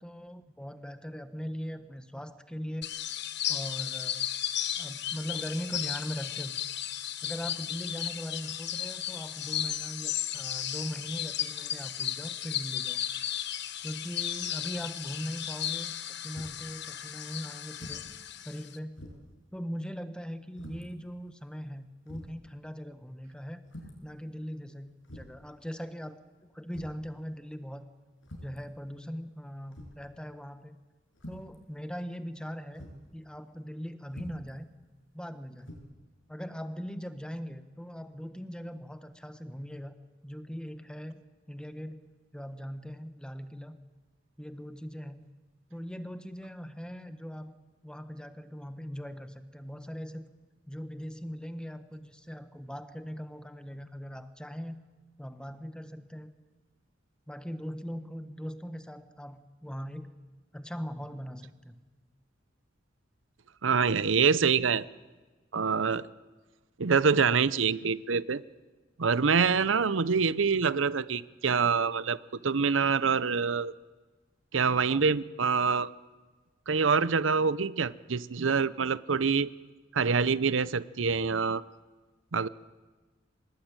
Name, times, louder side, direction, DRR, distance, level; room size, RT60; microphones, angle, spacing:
voice 1, 0.0-2.9 3.5-4.3 4.8-6.5 7.2-13.0 13.8-18.0 18.4-19.1 19.5-23.6 24.0-26.2 26.5-27.8 28.4-30.8 31.3-32.8 33.1-34.7 35.1-35.8 36.3-39.9 40.2-41.2 41.5-42.1 42.3-43.8 44.4-45.2 45.7-47.5 47.8-50.3 50.7-54.7 55.2-56.3 57.3-60.1 60.5-61.8 74.9-75.0, equal, 5° left, 10 dB, 1.3 m, -40 dB
sound 1, 2.8-18.8, left 11 dB, 65° left, 1.1 m, -35 dB
sound 2, 16.3-16.7 17.7-18.1 18.5-18.6 19.0-19.4 20.5-20.9 21.6-21.7 22.1-22.4 23.7-24.1 25.0-25.4 26.7-27.1 28.2-28.6 29.7-30.1 31.1-31.5 32.7-33.0 34.1-34.5 35.6-35.8, equal, 90° left, 7.1 m, -46 dB
voice 2, 63.6-64.9 65.5-66.1 66.8-68.4 69.0-72.2 72.4-73.7 74.5-75.9 76.7-79.5 79.9-81.6 82.3-82.5, right 5 dB, 85° right, 17 dB, 0.7 m, -25 dB
24.5 x 20.5 x 9.0 m, 1.3 s
head